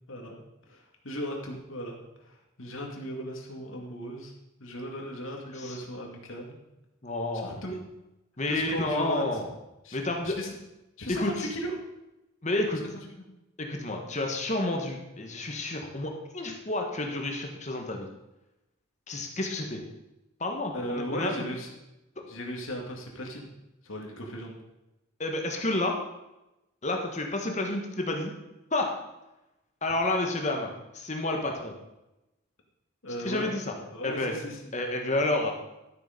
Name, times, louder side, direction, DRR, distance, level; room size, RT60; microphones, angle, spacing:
voice 1, 0.1-4.3 4.6-6.6 7.4-7.8 8.5-9.4 9.8-10.5 11.0-11.7 13.2-13.3 20.7-21.7 22.2-23.5 23.8-24.6 33.0-33.5 33.9-34.6, equal, 70° left, 0 dB, 2.4 m, -37 dB
voice 2, 7.0-7.6 8.4-9.5 9.9-10.4 11.1-11.5 12.4-12.8 13.6-18.1 19.1-19.8 20.4-21.4 22.2-22.3 25.2-26.0 26.8-28.3 28.7-28.9 29.8-31.7 33.2-33.7 34.0-34.3 34.7-35.6, left 2 dB, 35° left, 2 dB, 1.5 m, -30 dB
13.0 x 6.8 x 5.3 m, 0.94 s
head